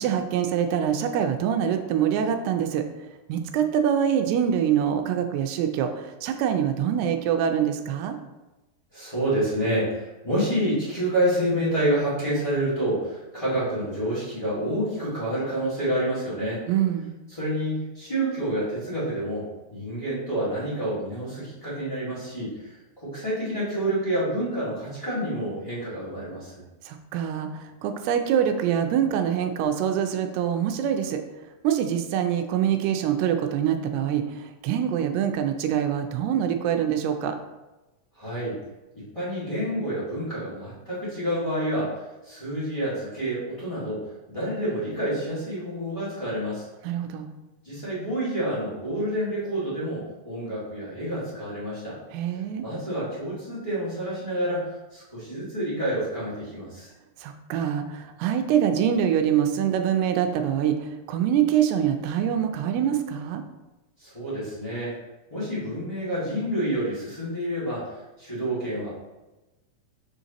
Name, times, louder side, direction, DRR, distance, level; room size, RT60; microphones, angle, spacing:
voice 1, 0.0-2.8 3.3-8.2 16.7-17.1 26.9-31.2 31.6-37.4 46.8-47.3 52.1-52.7 57.2-60.8 61.1-63.4, right 9 dB, 85° right, 6 dB, 2.5 m, -24 dB
voice 2, 8.9-16.6 17.3-26.6 38.1-38.6 38.9-42.0 42.2-46.7 47.6-52.0 52.6-56.9 64.0-64.9 65.3-68.9, right 1 dB, 55° left, -10 dB, 0.3 m, -28 dB
6.4 x 5.3 x 2.9 m, 1.1 s
omnidirectional pair, 4.7 m